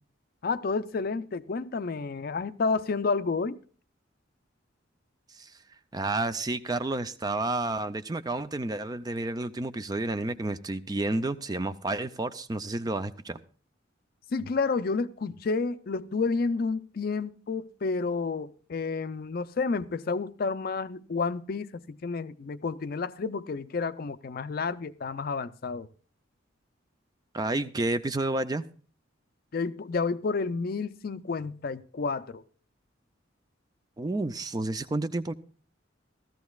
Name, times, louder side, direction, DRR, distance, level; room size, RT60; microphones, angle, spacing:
voice 1, 0.4-3.6 14.3-25.9 29.5-32.4, left 4 dB, 50° left, 0.4 m, -30 dB
voice 2, 5.9-13.4 27.3-28.7 34.0-35.3, right 2 dB, 20° right, 0.4 m, -30 dB
16.0 x 13.5 x 2.3 m
head